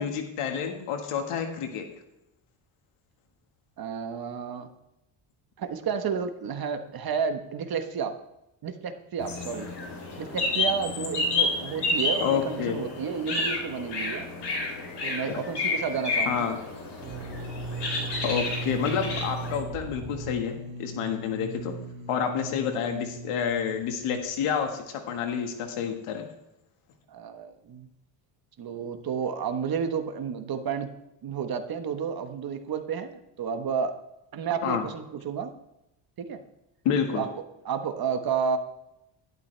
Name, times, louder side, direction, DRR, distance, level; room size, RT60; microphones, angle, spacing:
voice 1, 0.0-1.9 12.2-12.8 16.3-16.6 18.2-21.8 22.1-26.3 34.6-34.9 36.9-37.2, left 7 dB, 85° left, 5 dB, 1.9 m, -29 dB
voice 2, 3.8-4.7 5.6-8.2 8.6-9.7 10.2-14.3 15.0-16.5 27.1-27.9 28.6-30.9 31.2-34.0 34.3-35.5 36.2-36.4 37.1-37.3 37.6-38.6, right 6 dB, 45° right, 8 dB, 1.3 m, -31 dB
sound 1, 9.2-19.6, left 3 dB, 55° left, 3.9 m, -30 dB
sound 2, 17.0-24.7, right 4 dB, 70° right, 1.8 m, -38 dB
12.0 x 11.5 x 3.4 m, 0.87 s
cardioid pair, 120°, 50 cm